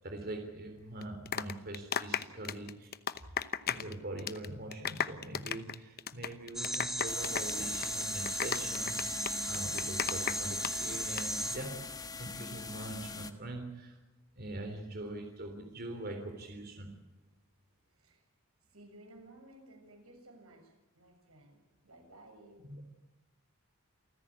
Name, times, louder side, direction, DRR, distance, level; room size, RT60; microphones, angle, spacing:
voice 1, 0.0-3.3 3.6-14.0 14.4-16.9 22.6-22.8, right 2 dB, 45° right, 4 dB, 3.4 m, -43 dB
sound 1, 1.0-3.9 4.2-4.5 4.7-10.7 11.0-11.2, left 7 dB, 45° left, 0.9 m, -35 dB
sound 2, 6.5-11.6, right 1 dB, ahead, 1.9 m, -36 dB
sound 3, 7.1-13.3, left 4 dB, 20° left, 1.3 m, -43 dB
voice 2, 18.7-22.6, right 1 dB, 90° right, 4 dB, 7.1 m, -56 dB
28.0 x 15.0 x 8.7 m, 1.1 s
head